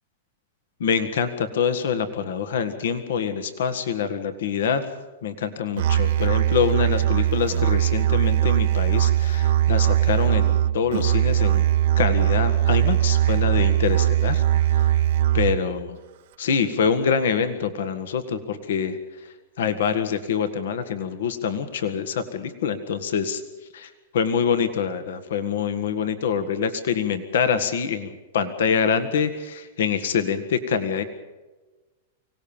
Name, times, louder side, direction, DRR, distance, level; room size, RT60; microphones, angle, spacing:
voice 1, 0.8-4.8 5.2-11.6 12.0-14.4 14.7-14.9 15.3-15.8 16.4-19.0 19.6-23.4 23.7-31.0, left 6 dB, 80° left, 10 dB, 1.6 m, -25 dB
Musical instrument, 5.8-15.7, right 12 dB, 65° right, 0.7 m, -20 dB
25.0 x 17.5 x 7.2 m, 1.2 s
hypercardioid pair, 135°, 0 cm